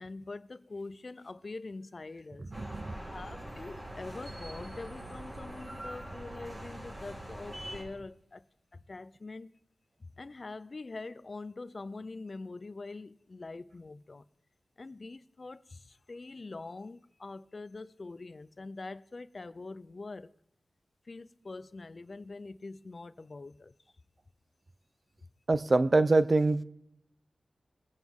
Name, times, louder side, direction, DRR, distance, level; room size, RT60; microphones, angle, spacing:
voice 1, 0.0-0.4 0.7-1.1 1.4-2.2 3.1-3.3 3.6-6.8 7.0-8.1 8.9-9.4 10.2-13.1 13.4-13.6 14.8-15.5 16.1-16.9 17.2-18.2 18.6-20.2 21.1-23.5, left 3 dB, 50° left, 0.5 m, -43 dB
voice 2, 2.4-2.9 25.5-26.6, right 2 dB, 45° right, 0.7 m, -25 dB
sound 1, 2.5-7.8, right 1 dB, 30° right, 4.6 m, -43 dB
22.5 x 9.2 x 3.7 m
cardioid pair, 55°, 0 cm